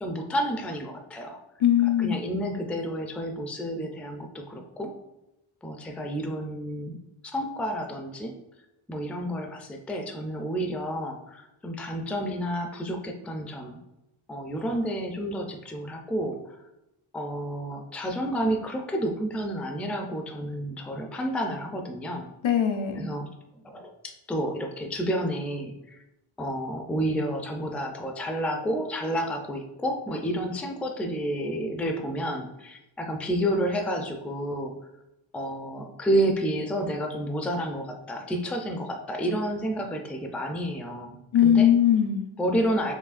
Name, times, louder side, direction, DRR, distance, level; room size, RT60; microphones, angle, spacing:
voice 1, 0.0-1.4 1.8-4.9 5.6-7.0 7.2-8.3 8.9-13.8 14.3-16.4 17.1-22.3 23.0-23.3 23.6-26.0 26.4-34.7 35.3-41.2 41.4-41.7 42.4-42.9, equal, 5° left, 3 dB, 0.3 m, -30 dB
voice 2, 1.6-2.2 22.4-23.1 41.3-42.2, left 9 dB, 75° left, 5 dB, 0.6 m, -20 dB
4.8 x 3.1 x 2.4 m, 0.93 s
wide cardioid pair, 85°, 49 cm